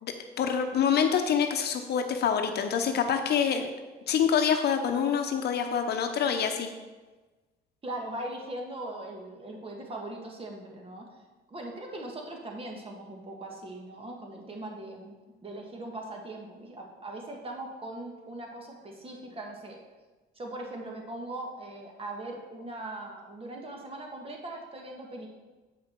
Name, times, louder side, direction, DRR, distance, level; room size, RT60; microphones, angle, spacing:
voice 1, 0.0-3.7 4.1-6.7, left 7 dB, 60° left, 6 dB, 0.8 m, -26 dB
voice 2, 7.8-11.1 11.5-15.1 15.4-19.8 20.3-25.3, right 1 dB, 30° right, 1 dB, 1.7 m, -40 dB
8.3 x 5.8 x 4.5 m, 1.2 s
cardioid pair, 110°, 19 cm